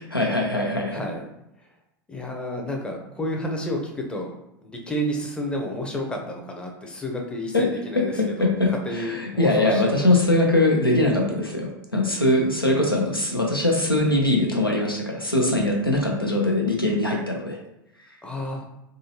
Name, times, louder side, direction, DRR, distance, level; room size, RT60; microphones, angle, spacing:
voice 1, 0.1-1.0 7.5-7.6 8.1-17.6, left 1 dB, 90° left, -1 dB, 0.7 m, -22 dB
voice 2, 0.9-1.2 1.6-1.7 2.1-4.3 4.6-8.1 8.4-10.1 18.2-18.7, equal, 10° left, 1 dB, 0.6 m, -31 dB
3.7 x 2.7 x 2.8 m, 0.86 s
figure-of-eight pair, 85°, 12 cm